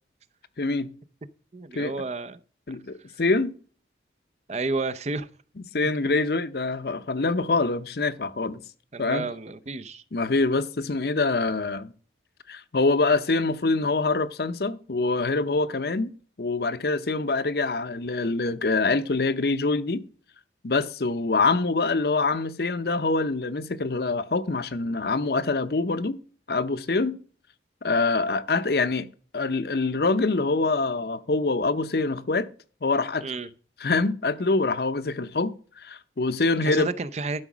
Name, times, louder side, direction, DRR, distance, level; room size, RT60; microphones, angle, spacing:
voice 1, 0.6-0.9 1.7-1.9 2.7-3.5 5.7-8.6 9.0-9.3 10.1-11.9 12.5-16.1 16.4-20.0 20.6-26.2 26.5-27.2 27.8-29.1 29.3-32.5 32.8-33.2 33.8-36.9, left 3 dB, 60° left, 0.7 m, -25 dB
voice 2, 1.5-2.4 4.5-5.3 8.9-10.0 33.2-33.5 36.6-37.4, right 3 dB, 35° right, 0.6 m, -31 dB
12.0 x 5.0 x 6.1 m
head